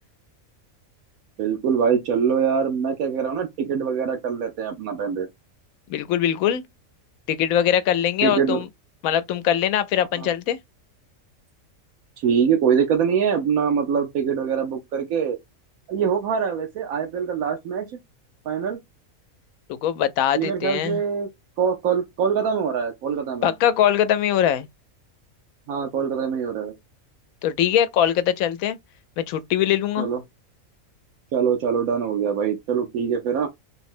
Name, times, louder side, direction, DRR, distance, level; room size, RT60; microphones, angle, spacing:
voice 1, 1.4-5.3 8.2-8.6 10.2-10.3 12.2-15.4 15.9-18.0 18.5-18.8 20.3-21.3 21.6-23.5 25.7-26.7 30.0-30.2 31.3-33.5, right 7 dB, 85° right, 1.1 m, -23 dB
voice 2, 5.9-6.6 7.3-8.7 9.0-10.6 19.7-21.0 23.4-24.7 27.4-28.8 29.2-30.1, left 10 dB, 90° left, 1.0 m, -22 dB
3.6 x 2.0 x 4.2 m
omnidirectional pair, 1.4 m